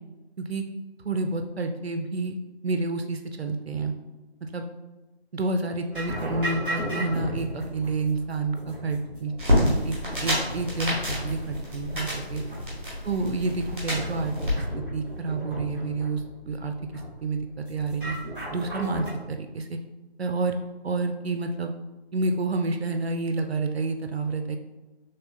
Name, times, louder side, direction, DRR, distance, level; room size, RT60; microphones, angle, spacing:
voice 1, 1.0-2.4 2.6-3.9 4.4-4.6 5.3-11.0 11.2-12.4 13.0-14.3 14.9-18.2 18.5-19.8 20.2-20.6 20.8-21.7 22.1-24.6, right 3 dB, 70° right, 6 dB, 0.5 m, -29 dB
sound 1, 5.9-19.1, equal, 10° left, 1.3 m, -36 dB
sound 2, 9.4-14.5, left 1 dB, 10° right, 1.1 m, -28 dB
4.2 x 3.2 x 2.7 m, 1.1 s
figure-of-eight pair, 165°, 33 cm